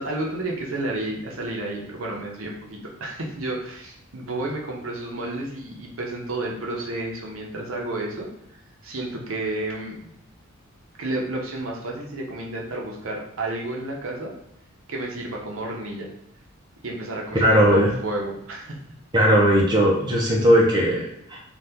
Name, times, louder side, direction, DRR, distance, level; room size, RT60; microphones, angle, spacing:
voice 1, 0.0-8.3 8.8-10.1 11.0-14.3 14.9-16.1 16.8-18.8, right 2 dB, 70° right, -1 dB, 0.7 m, -31 dB
voice 2, 17.3-17.9 19.1-21.4, equal, 20° right, -4 dB, 0.6 m, -18 dB
2.8 x 2.4 x 3.4 m, 0.76 s
head